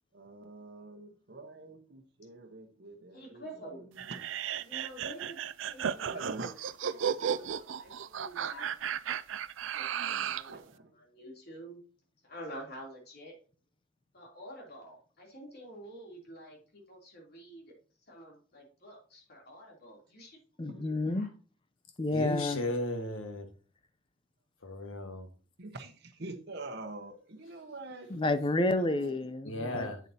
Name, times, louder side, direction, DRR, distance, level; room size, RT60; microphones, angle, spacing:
voice 1, 0.1-3.4 4.1-4.2 6.1-6.5 10.5-10.9 20.7-20.8 25.6-28.1 28.8-29.1, right 2 dB, 55° right, 1.2 m, -45 dB
voice 2, 3.1-3.8 4.6-5.4 5.7-8.7 9.7-11.8 12.2-13.3 14.1-17.7 18.1-20.4 20.7-21.3, equal, 50° left, 3.2 m, -48 dB
sound 1, 4.0-10.5, right 8 dB, 70° right, 0.4 m, -34 dB
voice 3, 20.6-21.3 22.0-22.6 28.1-29.9, left 2 dB, 25° left, 0.6 m, -30 dB
voice 4, 22.1-23.4 24.6-25.3 29.4-30.0, left 1 dB, 85° left, 1.6 m, -35 dB
8.2 x 7.6 x 2.8 m
head